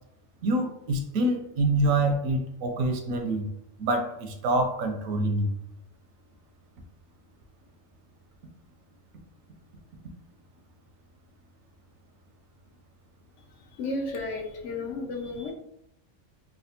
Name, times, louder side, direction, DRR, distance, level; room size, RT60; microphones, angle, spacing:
voice 1, 0.4-3.5 3.8-5.5, right 2 dB, 85° right, 5 dB, 1.0 m, -26 dB
voice 2, 13.8-15.5, left 2 dB, 70° left, 2 dB, 0.9 m, -33 dB
3.2 x 2.3 x 2.7 m, 0.76 s
omnidirectional pair, 1.4 m